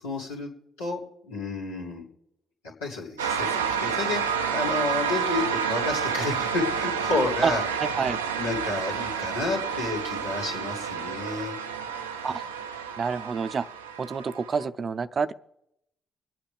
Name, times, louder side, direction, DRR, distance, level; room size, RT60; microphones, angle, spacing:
voice 1, 0.0-0.5 0.8-2.1 2.8-4.2 4.5-7.6 8.3-11.6, left 3 dB, 90° left, -6 dB, 2.7 m, -30 dB
sound 1, 3.2-14.6, right 7 dB, 90° right, 0.5 m, -29 dB
voice 2, 7.8-8.2 12.2-12.4 13.0-13.7 14.0-15.3, right 5 dB, 45° right, 14 dB, 0.6 m, -28 dB
26.0 x 9.1 x 3.5 m, 0.82 s
hypercardioid pair, 45°, 0 cm